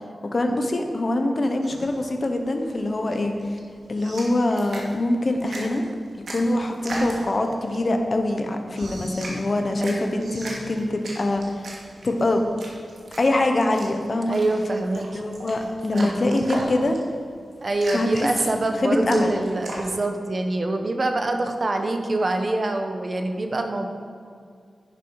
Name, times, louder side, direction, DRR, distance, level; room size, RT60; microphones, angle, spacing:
voice 1, 0.2-3.6 3.9-5.8 6.3-11.7 12.0-12.4 13.2-14.4 15.1-17.0 17.9-19.4, left 1 dB, 35° left, 4 dB, 1.1 m, -24 dB
sound 1, 1.6-19.9, right 1 dB, 80° right, 2.5 m, -38 dB
voice 2, 9.8-10.3 14.3-15.2 15.9-16.2 17.6-23.9, right 2 dB, 35° right, 5 dB, 1.1 m, -25 dB
11.0 x 10.0 x 4.9 m, 2.2 s
wide cardioid pair, 155°, 0 cm